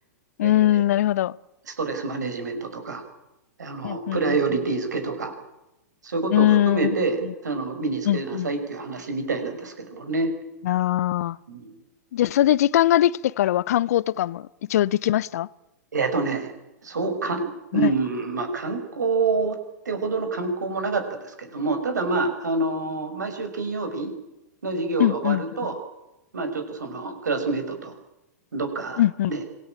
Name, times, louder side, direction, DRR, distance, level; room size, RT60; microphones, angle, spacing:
voice 1, 0.4-1.3 3.8-4.4 6.3-7.0 8.1-8.5 10.6-11.4 12.1-15.5 17.7-17.9 25.0-25.4 29.0-29.3, left 12 dB, 60° left, 0.8 m, -21 dB
voice 2, 1.7-3.0 3.6-5.3 6.0-7.2 7.4-10.3 11.5-11.8 15.9-16.5 16.8-17.4 17.7-19.6 19.9-24.1 24.6-25.8 26.3-27.9 28.5-29.0 29.3-29.4, right 3 dB, 75° right, 5.6 m, -27 dB
26.0 x 19.0 x 8.8 m
figure-of-eight pair, 105°, 9 cm